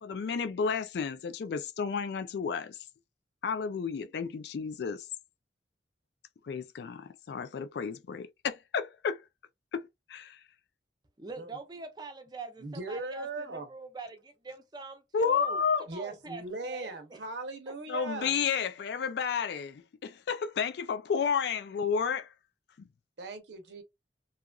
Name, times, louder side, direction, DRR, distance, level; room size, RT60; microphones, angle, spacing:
voice 1, 0.0-2.8 3.4-5.1 6.5-9.2 9.7-10.4 15.1-15.8 17.9-22.3 22.8-22.9, left 6 dB, 65° left, 0.3 m, -31 dB
voice 2, 11.2-15.6 15.9-17.2, right 3 dB, 20° right, 0.5 m, -44 dB
voice 3, 12.6-13.7 15.9-18.3 23.2-23.8, right 3 dB, 75° right, 0.7 m, -38 dB
2.9 x 2.4 x 2.3 m
head